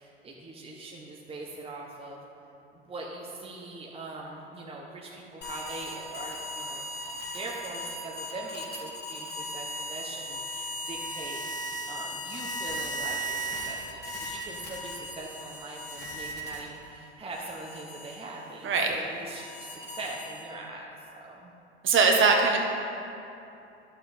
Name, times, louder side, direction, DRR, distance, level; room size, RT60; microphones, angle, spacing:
voice 1, 0.0-2.2 2.9-6.8 7.3-20.8 21.2-21.5, right 2 dB, 15° right, -2 dB, 1.1 m, -41 dB
sound 1, 5.4-16.9 17.3-20.7, equal, 30° left, 2.4 m, -37 dB
voice 2, 18.6-18.9 21.8-22.6, right 4 dB, 35° right, 1 dB, 1.5 m, -21 dB
11.5 x 6.9 x 4.3 m, 2.8 s
hypercardioid pair, 85°, 34 cm